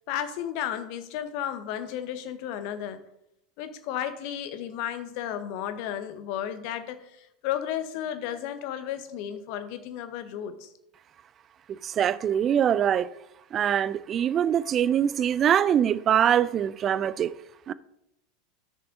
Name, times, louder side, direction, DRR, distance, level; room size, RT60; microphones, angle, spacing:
voice 1, 0.1-3.0 3.6-10.7, left 10 dB, 50° left, 0.8 m, -33 dB
voice 2, 11.7-13.1 13.5-17.3 17.7-17.8, right 9 dB, 30° right, 0.3 m, -23 dB
12.5 x 6.6 x 2.7 m
figure-of-eight pair, 80°, 0 cm